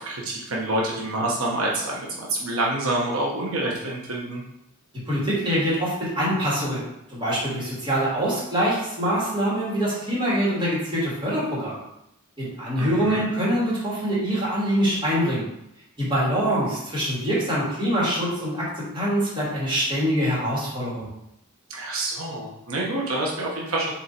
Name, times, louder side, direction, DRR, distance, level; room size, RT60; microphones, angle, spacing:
voice 1, 0.0-4.4 12.8-13.3 21.7-23.9, right 2 dB, 80° right, -3 dB, 1.3 m, -27 dB
voice 2, 5.1-11.8 12.4-15.4 16.0-21.1, equal, 20° right, -7 dB, 2.8 m, -24 dB
7.3 x 4.0 x 4.5 m, 0.82 s
head